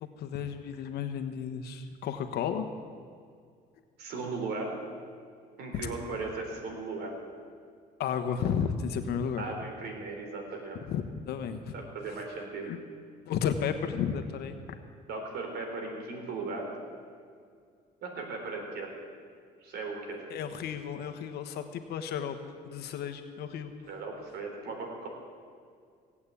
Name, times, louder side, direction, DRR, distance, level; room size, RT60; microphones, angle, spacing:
voice 1, 0.0-2.7 5.7-5.9 8.0-9.4 10.9-11.7 12.6-12.8 13.3-14.5 20.3-22.4 22.6-23.7, left 7 dB, 75° left, 8 dB, 1.2 m, -33 dB
voice 2, 4.0-4.7 5.6-7.2 9.4-10.8 11.7-12.7 15.1-16.7 18.0-18.9 19.6-20.2 23.9-25.1, right 3 dB, 70° right, 2 dB, 3.8 m, -37 dB
18.0 x 8.5 x 8.4 m, 2.2 s
cardioid pair, 110°, 17 cm